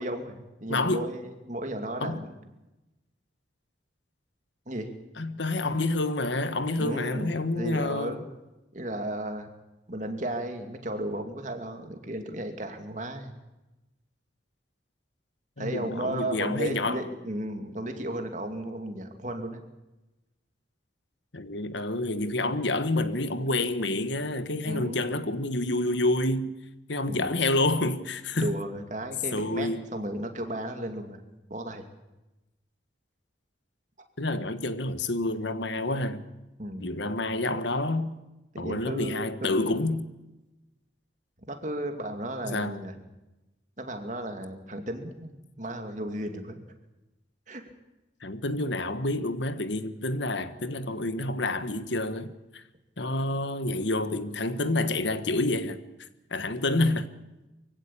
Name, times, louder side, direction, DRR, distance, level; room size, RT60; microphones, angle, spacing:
voice 1, 0.0-2.3 4.7-4.9 6.8-8.3 8.7-9.5 9.9-13.3 15.6-19.6 24.5-25.0 27.1-27.3 28.3-31.2 31.5-31.9 36.6-37.0 38.5-39.9 41.5-43.0 43.8-46.6 47.5-47.6, right 1 dB, 40° right, 2.5 m, -34 dB
voice 2, 0.7-1.1 2.0-2.2 5.2-8.2 15.6-17.0 21.3-26.5 26.9-28.6 29.3-29.9 34.2-36.2 36.8-38.1 38.6-40.1 42.4-42.8 48.2-52.6 53.0-55.8 56.3-57.1, left 2 dB, 70° left, 1.4 m, -28 dB
24.0 x 16.0 x 8.6 m
head